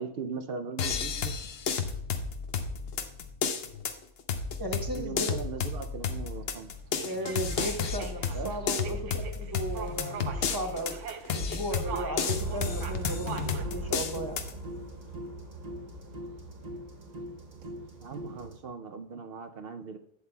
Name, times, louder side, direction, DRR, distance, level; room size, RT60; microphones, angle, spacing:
voice 1, 0.0-1.4 5.0-6.7 8.3-8.6 18.0-20.0, right 5 dB, 60° right, 7 dB, 0.7 m, -39 dB
sound 1, 0.8-14.5, left 6 dB, 60° left, 0.9 m, -32 dB
voice 2, 4.6-5.4 7.0-11.0 11.3-14.4, right 1 dB, 20° right, 4 dB, 0.9 m, -36 dB
sound 2, 6.0-18.5, right 7 dB, 85° right, 1.1 m, -45 dB
sound 3, 12.3-18.6, right 3 dB, 35° right, 1.2 m, -40 dB
11.5 x 8.4 x 2.2 m, 0.76 s
omnidirectional pair, 1.2 m